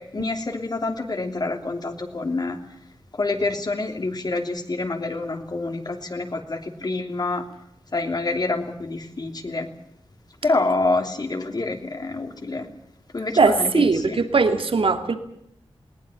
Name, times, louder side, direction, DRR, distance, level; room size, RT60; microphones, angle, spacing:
voice 1, 0.0-2.6 3.1-7.4 7.9-9.7 10.4-12.7 13.1-14.2, left 3 dB, 45° left, 4 dB, 3.0 m, -27 dB
voice 2, 13.4-15.2, right 4 dB, 65° right, 6 dB, 2.3 m, -20 dB
20.5 x 19.0 x 8.7 m, 0.76 s
wide cardioid pair, 95°, 10 cm